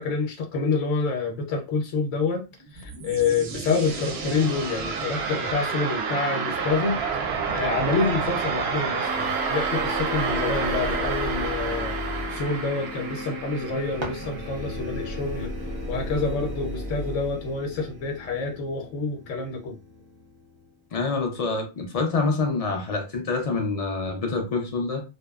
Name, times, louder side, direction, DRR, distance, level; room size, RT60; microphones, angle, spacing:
voice 1, 0.0-12.0 12.3-15.5 15.9-19.8, left 4 dB, 80° left, 0.9 m, -27 dB
sound 1, 2.6-15.4, right 5 dB, 65° right, 0.7 m, -30 dB
sound 2, 9.0-20.6, left 2 dB, 15° right, 0.7 m, -35 dB
sound 3, 13.9-15.0, right 2 dB, 45° right, 0.3 m, -39 dB
voice 2, 20.9-25.0, left 3 dB, 55° left, 0.4 m, -26 dB
2.7 x 2.0 x 2.3 m
omnidirectional pair, 1.2 m